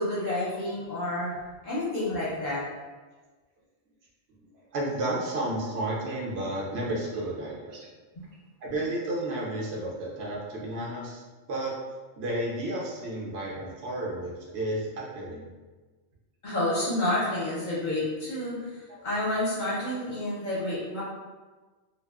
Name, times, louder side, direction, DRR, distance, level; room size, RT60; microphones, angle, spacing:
voice 1, 0.0-1.3 1.6-2.6 16.4-21.0, left 1 dB, 50° left, -8 dB, 0.8 m, -29 dB
voice 2, 4.7-7.9 8.6-11.2 11.5-11.7 12.2-15.5 18.9-19.0, right 1 dB, 70° right, -3 dB, 0.8 m, -32 dB
2.4 x 2.2 x 2.3 m, 1.3 s
omnidirectional pair, 1.1 m